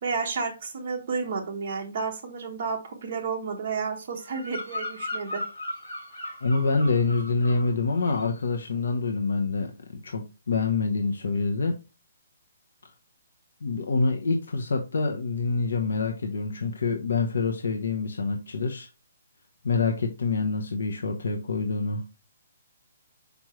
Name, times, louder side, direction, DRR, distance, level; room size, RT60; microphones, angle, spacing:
voice 1, 0.0-5.4, right 5 dB, 30° right, 1 dB, 1.3 m, -31 dB
Bird vocalization bird call bird song, 4.2-7.7 8.0-8.4, left 1 dB, 40° left, 3.3 m, -37 dB
voice 2, 6.4-9.7 10.0-11.7 13.6-18.9 19.6-22.0, left 4 dB, 80° left, 3 dB, 0.9 m, -26 dB
6.2 x 5.2 x 3.1 m, 0.30 s
hypercardioid pair, 180°, 0 cm